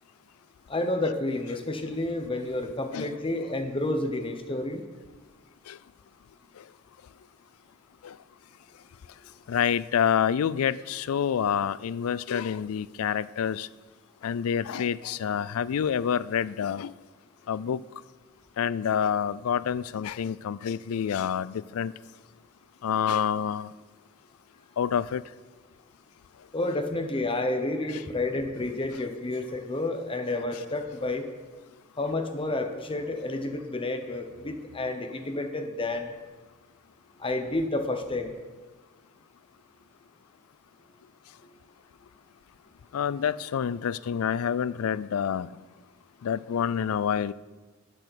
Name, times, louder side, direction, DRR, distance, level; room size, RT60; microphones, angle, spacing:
voice 1, 0.7-4.8 26.5-31.3 32.0-36.1 37.2-38.3 41.4-41.5, left 2 dB, 25° left, 6 dB, 1.0 m, -30 dB
voice 2, 9.5-13.7 14.2-16.9 17.5-17.8 18.6-21.9 22.8-23.7 24.8-25.2 42.9-45.5 46.2-47.3, left 8 dB, 85° left, 19 dB, 0.4 m, -27 dB
8.4 x 6.8 x 7.8 m, 1.3 s
head